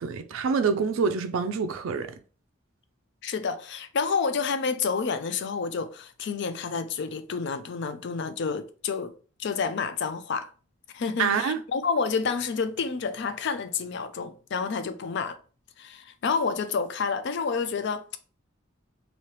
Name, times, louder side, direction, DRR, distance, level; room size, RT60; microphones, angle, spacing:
voice 1, 0.0-2.1 11.2-11.6, right 5 dB, 75° right, 0.4 m, -26 dB
voice 2, 3.2-9.1 9.4-10.5 10.9-15.4 15.8-18.2, left 5 dB, 60° left, 0.4 m, -29 dB
3.0 x 2.8 x 3.1 m
head